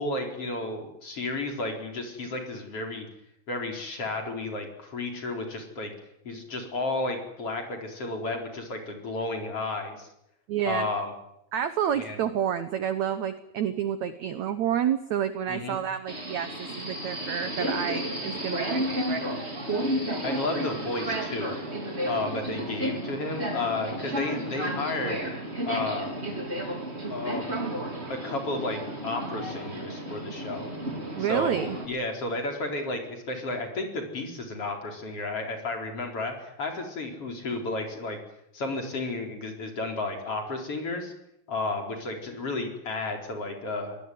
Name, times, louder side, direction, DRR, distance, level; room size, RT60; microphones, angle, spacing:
voice 1, 0.0-3.1 3.5-5.9 6.2-10.1 10.7-11.1 12.0-12.2 15.5-15.8 20.2-21.5 22.0-25.2 25.7-26.1 27.1-27.6 28.1-30.7 31.2-38.2 38.5-41.1 41.5-44.0, left 2 dB, 35° left, 3 dB, 5.1 m, -32 dB
voice 2, 10.5-10.9 11.5-19.2 31.1-31.8, right 9 dB, 65° right, 11 dB, 1.8 m, -29 dB
Subway metro underground, 16.1-31.9, right 1 dB, 15° right, 4.5 m, -32 dB
24.5 x 19.5 x 9.5 m, 0.79 s
omnidirectional pair, 4.5 m